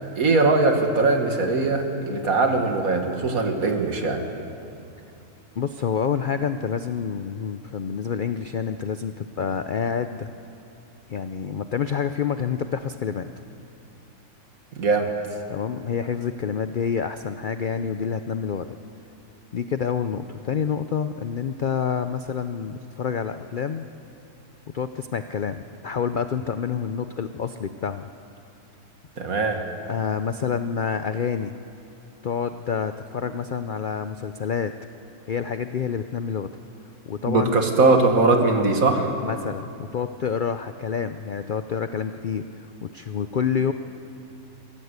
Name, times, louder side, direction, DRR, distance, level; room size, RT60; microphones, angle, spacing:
voice 1, 0.2-4.2 14.7-15.1 29.2-29.6 37.3-39.1, right 3 dB, 65° right, 4 dB, 2.2 m, -21 dB
voice 2, 5.6-10.3 11.1-13.3 15.5-18.7 19.5-23.9 24.7-28.1 29.8-31.6 32.2-34.7 35.3-36.5 37.1-37.9 39.2-43.7, left 7 dB, 70° left, 10 dB, 0.4 m, -28 dB
22.5 x 15.5 x 8.1 m, 2.7 s
omnidirectional pair, 1.6 m